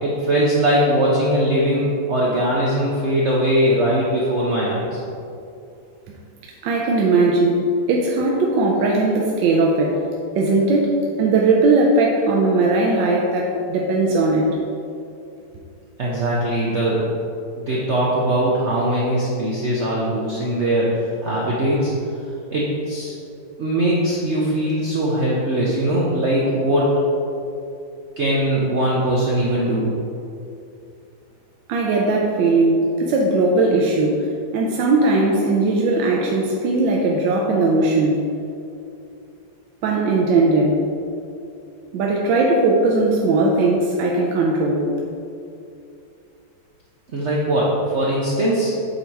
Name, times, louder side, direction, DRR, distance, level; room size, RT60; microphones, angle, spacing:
voice 1, 0.0-5.0 16.0-17.0 17.6-21.9 22.5-23.1 23.6-27.0 28.2-29.8 47.1-48.7, right 1 dB, 55° right, -5 dB, 0.8 m, -20 dB
voice 2, 6.6-10.0 10.4-10.9 11.2-14.6 31.7-34.2 34.5-38.2 39.8-40.8 41.9-44.9, right 2 dB, 85° right, -1 dB, 1.3 m, -18 dB
7.9 x 2.9 x 4.5 m, 2.6 s
omnidirectional pair, 2.0 m